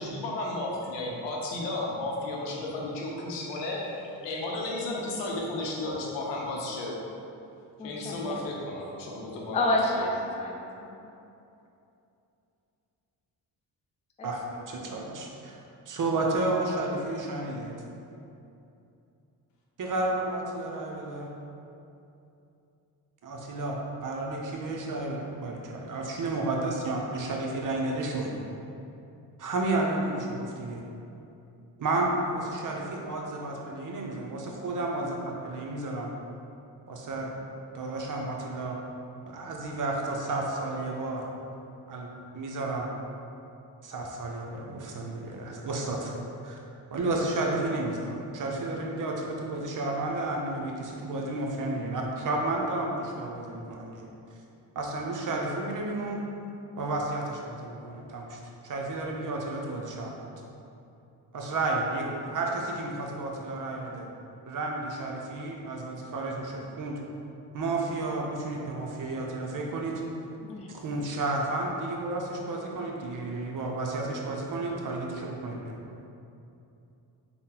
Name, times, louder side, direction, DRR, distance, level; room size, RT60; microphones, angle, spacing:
voice 1, 0.0-4.0 4.2-6.9 7.8-10.1, left 2 dB, 90° left, -2 dB, 0.6 m, -33 dB
voice 2, 7.8-8.4 9.5-11.0 14.2-14.6 70.4-70.7, left 1 dB, 15° left, -1 dB, 0.4 m, -30 dB
voice 3, 14.2-15.6 15.9-17.7 19.8-21.3 23.2-28.3 29.4-30.8 31.8-36.1 36.9-37.4 37.7-38.8 39.3-41.3 41.9-42.9 43.8-46.1 46.4-46.6 46.9-54.1 54.7-56.2 56.8-60.3 61.3-64.1 64.5-67.0 67.5-69.9 70.7-75.7, right 2 dB, 50° right, -1 dB, 0.6 m, -32 dB
3.6 x 2.2 x 2.8 m, 2.7 s
cardioid pair, 60°, 42 cm